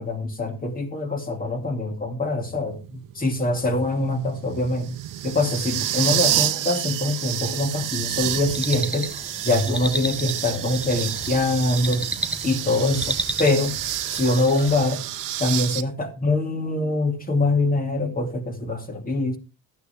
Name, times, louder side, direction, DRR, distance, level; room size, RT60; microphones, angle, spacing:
voice 1, 0.0-5.0 5.2-12.1 12.4-13.8 14.1-15.0 15.4-19.4, left 2 dB, 25° left, 2.5 m, -24 dB
sound 1, 2.7-15.8, right 13 dB, 55° right, 1.0 m, -29 dB
sound 2, 8.5-14.9, right 1 dB, 5° right, 1.2 m, -33 dB
13.5 x 9.1 x 3.5 m
cardioid pair, 110°, 37 cm